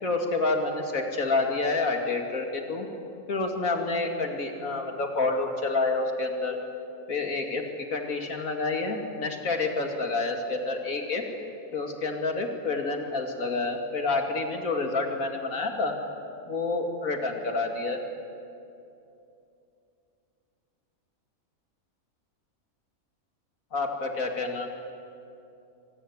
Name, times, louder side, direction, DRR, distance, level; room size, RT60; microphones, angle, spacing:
voice 1, 0.0-2.9 3.3-6.6 7.1-7.6 7.9-11.2 11.7-15.9 16.5-18.0 23.7-24.7, left 3 dB, 80° left, 3 dB, 2.8 m, -28 dB
24.5 x 18.5 x 9.4 m, 2.7 s
omnidirectional pair, 1.4 m